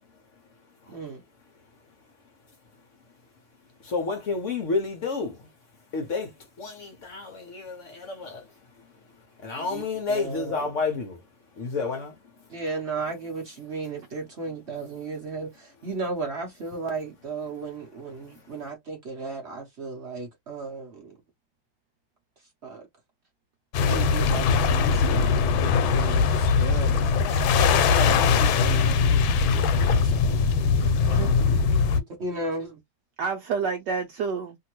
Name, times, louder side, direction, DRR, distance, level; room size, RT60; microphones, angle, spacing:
voice 1, 3.8-5.4 5.9-6.3 6.6-8.4 9.4-11.2 11.6-12.1, left 4 dB, 55° left, 0.9 m, -30 dB
voice 2, 9.6-10.7 12.5-21.1 22.6-22.9 23.9-30.5 30.7-31.2 31.5-32.8, right 3 dB, 55° right, 0.7 m, -36 dB
sound 1, 23.7-32.0, left 5 dB, 85° left, 1.4 m, -21 dB
voice 3, 30.8-31.5 33.2-34.6, right 5 dB, 75° right, 1.1 m, -30 dB
2.8 x 2.7 x 2.9 m
omnidirectional pair, 2.1 m